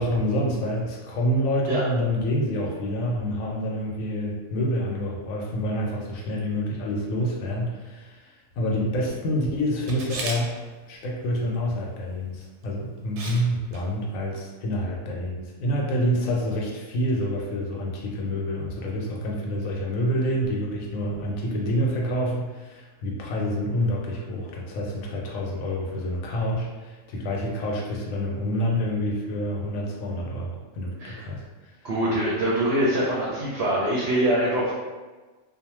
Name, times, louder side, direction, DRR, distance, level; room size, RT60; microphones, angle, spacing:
voice 1, 0.0-10.6 10.9-31.7, equal, 75° left, -2 dB, 1.0 m, -27 dB
Camera, 9.9-10.4 12.4-12.6 13.2-13.4 13.7-13.8, right 3 dB, 85° right, 1.0 m, -33 dB
voice 2, 31.8-34.7, right 1 dB, 60° right, -6 dB, 0.7 m, -24 dB
2.6 x 2.1 x 3.0 m, 1.3 s
omnidirectional pair, 1.5 m